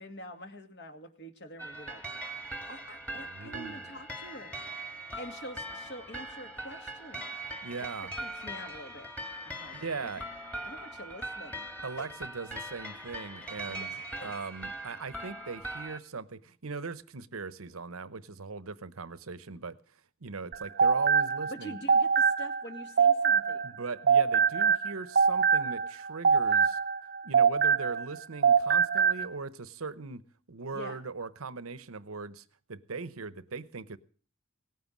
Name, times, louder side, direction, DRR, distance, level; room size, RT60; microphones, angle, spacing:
voice 1, 0.0-2.0 2.7-4.6 5.2-7.3 7.8-9.1 9.4-10.2 10.6-11.7 12.0-12.1 13.7-14.3 21.5-23.8 30.7-31.0, equal, 55° left, 2.3 m, -46 dB
sound 1, 1.6-16.0, right 1 dB, 5° left, 1.7 m, -41 dB
voice 2, 3.2-3.9 7.6-8.1 9.7-10.2 11.8-13.9 14.2-19.8 20.2-21.7 23.6-26.8 27.2-34.0, right 4 dB, 90° right, 0.9 m, -40 dB
sound 2, 20.5-23.8 24.1-28.2 28.4-29.3, right 6 dB, 50° right, 0.7 m, -24 dB
18.0 x 9.5 x 7.3 m
head